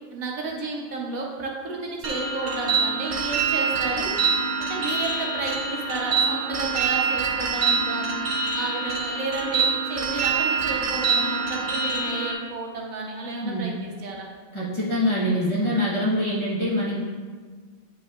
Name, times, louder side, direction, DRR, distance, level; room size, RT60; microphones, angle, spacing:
voice 1, 0.1-8.2 8.5-14.3, right 3 dB, 80° right, -1 dB, 1.4 m, -32 dB
sound 1, 2.0-12.3, right 5 dB, 55° right, 0.5 m, -25 dB
voice 2, 14.5-17.0, left 1 dB, 25° left, -7 dB, 1.2 m, -24 dB
8.2 x 5.7 x 2.4 m, 1.5 s
omnidirectional pair, 1.4 m